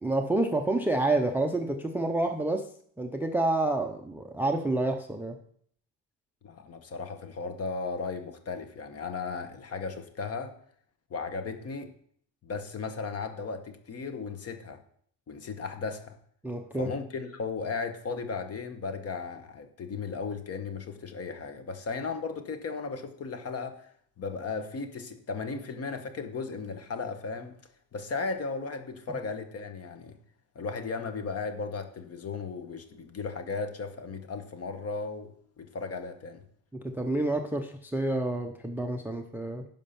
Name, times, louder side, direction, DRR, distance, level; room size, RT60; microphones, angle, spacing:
voice 1, 0.0-2.6 3.0-5.4 16.4-16.9 36.7-39.6, right 2 dB, 5° right, 6 dB, 0.4 m, -28 dB
voice 2, 6.4-10.5 11.1-11.9 12.4-14.8 15.3-16.2 16.8-23.9 24.2-27.5 27.9-30.2 30.5-36.4, left 4 dB, 35° left, 8 dB, 1.0 m, -36 dB
10.5 x 5.4 x 5.7 m, 0.63 s
cardioid pair, 155°, 40 cm